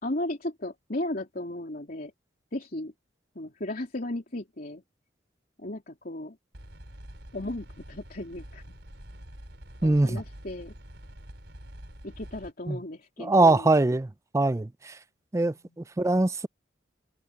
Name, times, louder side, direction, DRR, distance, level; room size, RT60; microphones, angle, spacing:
voice 1, 0.0-2.1 2.5-2.9 3.3-4.8 5.6-6.4 7.3-8.8 9.8-10.7 12.0-13.7 15.4-15.8, left 1 dB, 50° left, 3.2 m, -35 dB
sound 1, 6.5-12.5, equal, 70° right, 5.3 m, -46 dB
voice 2, 9.8-10.2 12.7-12.8 13.2-15.0 15.3-16.5, right 2 dB, 15° right, 0.4 m, -23 dB
head